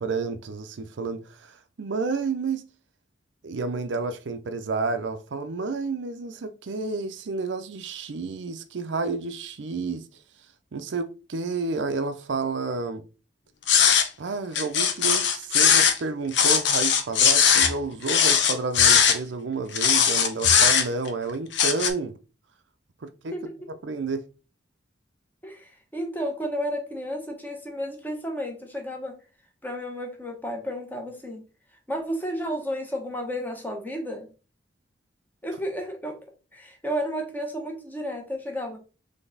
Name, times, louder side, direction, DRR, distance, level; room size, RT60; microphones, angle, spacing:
voice 1, 0.0-2.6 3.4-10.0 10.7-13.0 14.2-22.1 23.0-23.3 23.7-24.2, right 4 dB, 70° right, 0.5 m, -30 dB
sound 1, 13.7-14.1 14.6-16.0 16.3-17.7 18.1-19.2 19.7-21.1 21.5-21.9, left 7 dB, 65° left, 0.7 m, -19 dB
voice 2, 25.4-29.2 29.6-31.4 31.9-34.3 35.4-36.2 36.5-38.8, equal, 10° left, 1.0 m, -32 dB
3.9 x 3.3 x 3.8 m
head